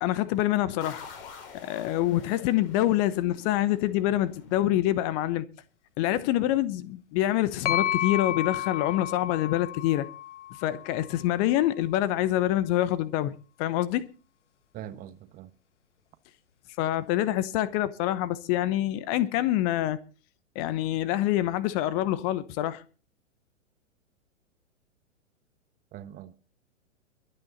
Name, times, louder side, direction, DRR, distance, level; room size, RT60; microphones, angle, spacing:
voice 1, 0.0-1.0 1.6-5.4 6.0-10.1 10.6-13.3 13.6-14.1 16.8-20.0 20.5-22.8, left 14 dB, 30° left, 1.0 m, -26 dB
sound 1, 0.8-5.3, left 6 dB, 45° left, 6.5 m, -47 dB
sound 2, 7.6-11.4, left 11 dB, 65° left, 0.9 m, -32 dB
voice 2, 14.7-15.5 25.9-26.3, right 11 dB, 25° right, 1.3 m, -42 dB
23.0 x 9.0 x 4.1 m
figure-of-eight pair, 110°, 38 cm